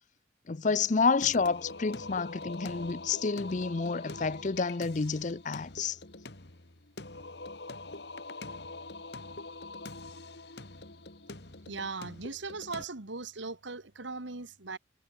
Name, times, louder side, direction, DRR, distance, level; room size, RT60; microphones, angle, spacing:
voice 1, 0.5-6.0, left 4 dB, 40° left, 0.6 m, -29 dB
Singing, 1.2-12.8, left 3 dB, 60° left, 2.3 m, -44 dB
voice 2, 11.7-14.8, right 3 dB, 85° right, 2.1 m, -39 dB
head